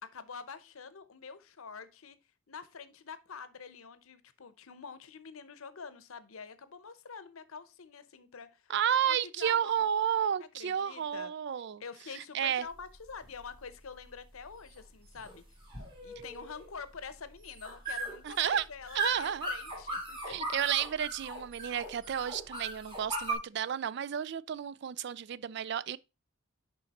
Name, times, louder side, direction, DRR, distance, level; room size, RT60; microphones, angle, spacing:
voice 1, 0.0-2.2 2.5-8.6 9.0-9.9 10.4-11.3 11.8-15.4 16.0-20.3, left 5 dB, 75° left, 0.8 m, -46 dB
voice 2, 8.7-11.8 12.1-12.7 18.2-18.6 18.9-19.5 20.3-26.0, right 9 dB, 50° right, 0.3 m, -31 dB
sound 1, 12.7-23.3, right 2 dB, 25° right, 2.1 m, -39 dB
10.0 x 3.8 x 4.1 m
head